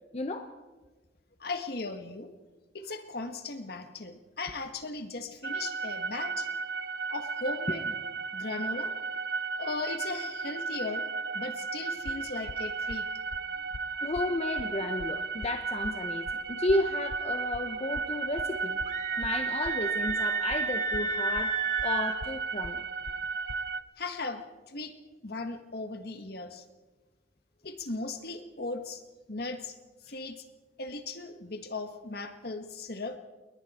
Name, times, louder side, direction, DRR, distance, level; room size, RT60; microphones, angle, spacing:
voice 1, 0.1-0.5 14.0-18.8 19.2-21.5 21.8-22.8, left 2 dB, 35° left, 6 dB, 0.9 m, -32 dB
voice 2, 1.4-2.3 2.7-6.5 7.1-8.0 8.3-8.9 9.6-11.1 11.3-13.1 24.0-24.9 25.2-26.6 27.6-29.0 29.3-29.8 30.0-30.4 30.8-33.2, left 3 dB, 60° left, 7 dB, 1.6 m, -37 dB
sound 1, 5.4-23.8, right 4 dB, 75° right, 0.7 m, -34 dB
sound 2, 12.0-23.7, left 3 dB, 80° left, 0.6 m, -45 dB
Screaming, 18.9-22.2, right 5 dB, 40° right, 1.2 m, -31 dB
28.5 x 21.5 x 4.4 m, 1.3 s
head